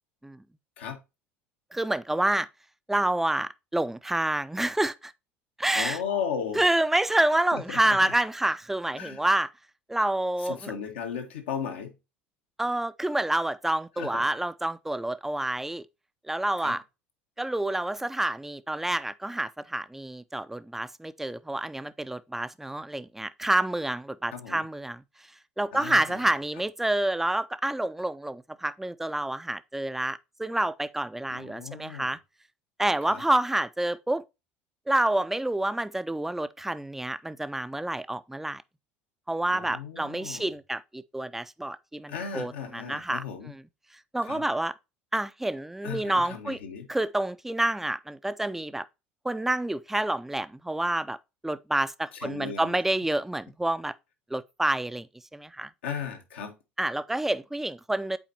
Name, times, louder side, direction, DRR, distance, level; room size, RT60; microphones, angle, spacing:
voice 1, 1.7-2.5 2.9-5.1 5.6-6.0 6.5-9.5 9.9-10.7 12.6-15.8 16.3-16.8 17.4-25.0 25.6-32.2 32.8-34.2 34.9-38.6 39.3-43.2 44.1-44.7 45.1-46.6 46.9-48.8 49.2-51.2 51.4-53.9 54.3-55.1 55.3-55.7 56.8-58.2, right 1 dB, 5° right, 0.4 m, -28 dB
voice 2, 5.7-6.6 7.5-8.0 8.9-9.2 10.4-11.9 14.0-14.2 16.6-16.8 24.3-24.6 25.7-26.2 31.3-32.1 33.1-33.2 39.5-40.5 42.1-43.5 44.2-44.5 45.8-46.9 52.1-52.7 55.8-56.5, left 7 dB, 85° left, 1.3 m, -36 dB
8.9 x 4.2 x 2.8 m
hypercardioid pair, 75°, 6 cm